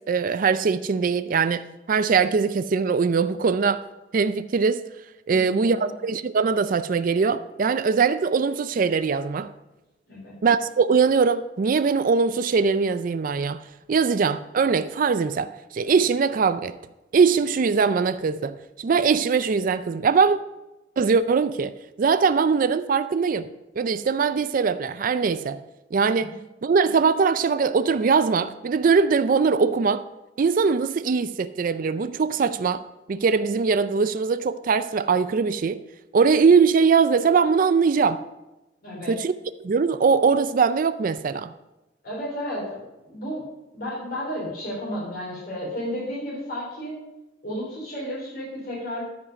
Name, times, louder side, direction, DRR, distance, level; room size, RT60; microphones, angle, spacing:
voice 1, 0.1-3.8 4.1-4.8 5.3-9.5 10.4-13.6 13.9-16.8 17.1-20.4 21.0-23.5 23.8-25.6 25.9-26.3 26.6-30.0 30.4-32.8 33.1-35.8 36.1-38.2 39.1-39.3 39.6-41.5, right 5 dB, 45° right, 0.4 m, -21 dB
voice 2, 5.3-5.9 10.1-10.4 26.1-26.4 38.8-39.1 42.0-42.8 43.1-43.4 43.7-47.0 47.4-49.0, equal, 55° left, 3.9 m, -32 dB
13.5 x 5.2 x 5.3 m
head